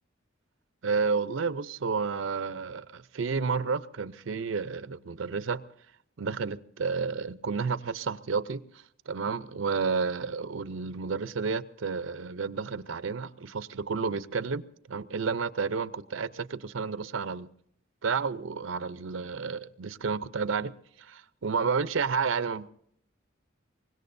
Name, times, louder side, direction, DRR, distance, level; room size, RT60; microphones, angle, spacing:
voice 1, 0.8-5.6 6.2-8.6 9.1-14.6 14.9-17.5 18.0-20.7 21.0-22.7, right 5 dB, 80° right, 0.6 m, -31 dB
24.5 x 20.5 x 2.6 m
head